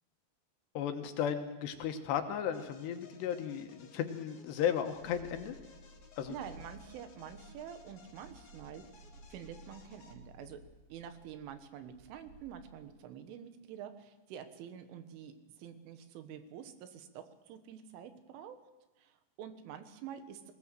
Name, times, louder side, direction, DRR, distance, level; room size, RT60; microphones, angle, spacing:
voice 1, 0.7-5.6 6.2-6.3, left 9 dB, 70° left, 7 dB, 3.0 m, -35 dB
sound 1, 2.5-10.1, left 4 dB, 40° left, 2.2 m, -59 dB
Purr, 4.9-12.9, right 1 dB, 65° right, 3.0 m, -56 dB
voice 2, 6.3-8.8 9.3-10.6 10.9-18.6 19.0-20.5, right 9 dB, 90° right, 9 dB, 3.9 m, -47 dB
20.0 x 19.0 x 7.6 m, 1.1 s
omnidirectional pair, 5.5 m